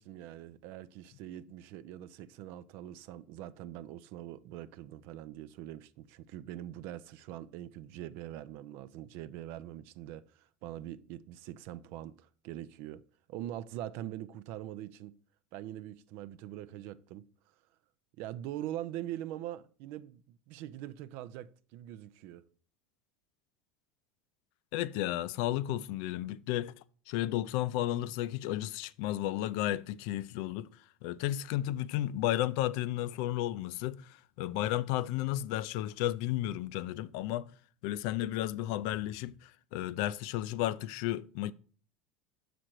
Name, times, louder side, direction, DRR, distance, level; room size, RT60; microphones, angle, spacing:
voice 1, 0.0-13.0 13.3-15.1 15.5-17.3 18.2-22.4, right 13 dB, 65° right, 0.4 m, -43 dB
voice 2, 24.7-26.7 27.1-30.7 31.0-37.5 37.8-41.5, left 14 dB, 65° left, 0.4 m, -33 dB
6.3 x 5.1 x 4.4 m
hypercardioid pair, 90°, 4 cm